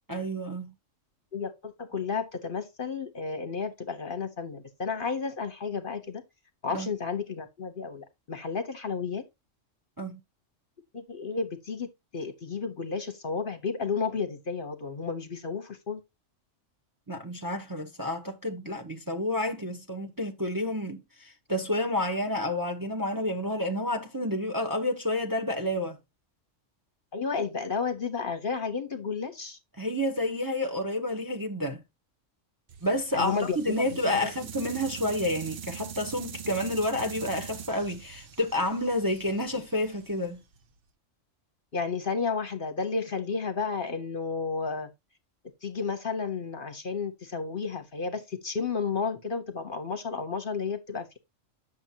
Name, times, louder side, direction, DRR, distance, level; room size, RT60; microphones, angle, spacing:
voice 1, 0.1-0.7 6.7-6.9 10.0-10.2 17.1-26.0 29.8-31.8 32.8-40.4, left 1 dB, 20° right, 0.8 m, -30 dB
voice 2, 1.3-6.2 6.6-9.2 10.9-11.9 12.1-16.0 27.1-29.6 33.1-33.8 34.2-34.3 41.7-44.9 45.6-51.2, left 5 dB, 45° left, 0.9 m, -32 dB
sound 1, 32.7-40.8, right 8 dB, 55° right, 0.8 m, -43 dB
8.8 x 6.3 x 2.8 m
omnidirectional pair, 1.3 m